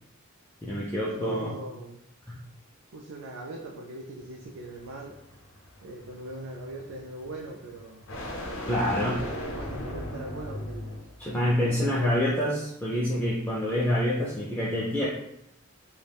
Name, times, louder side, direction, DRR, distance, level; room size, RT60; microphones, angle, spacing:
voice 1, 0.6-1.5 2.3-2.4 8.7-9.2 11.2-15.1, equal, 10° left, -6 dB, 0.3 m, -27 dB
voice 2, 1.2-2.0 2.9-5.2 5.8-8.1 8.7-11.0 11.6-12.3, right 1 dB, 65° right, -1 dB, 0.3 m, -40 dB
sound 1, 4.2-11.2, equal, 65° left, 0.5 m, -38 dB
3.3 x 2.1 x 2.2 m, 0.81 s
head